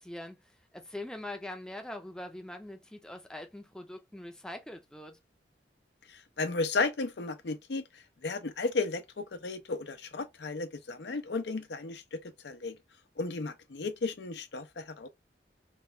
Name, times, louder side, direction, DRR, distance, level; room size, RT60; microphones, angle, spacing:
voice 1, 0.0-5.2, left 1 dB, 5° left, 0.5 m, -43 dB
voice 2, 6.1-12.8 13.2-15.1, left 3 dB, 80° left, 0.6 m, -34 dB
3.0 x 2.3 x 3.1 m
head